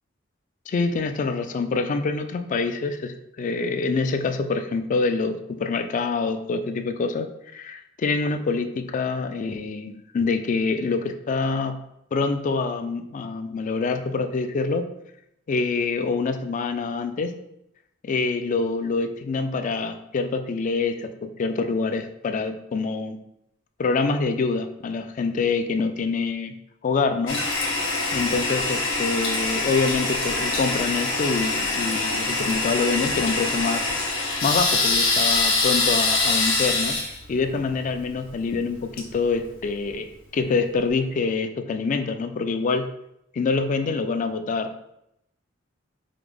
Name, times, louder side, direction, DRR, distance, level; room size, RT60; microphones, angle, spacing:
voice 1, 0.7-11.8 12.1-14.9 15.5-17.3 18.0-23.2 23.8-26.5 26.8-27.4 28.1-33.8 34.4-42.9 43.3-44.9, left 4 dB, 40° left, 8 dB, 0.3 m, -26 dB
Toilet flush, 27.3-39.9, left 3 dB, 75° left, 1.0 m, -25 dB
4.9 x 2.0 x 3.3 m, 0.80 s
head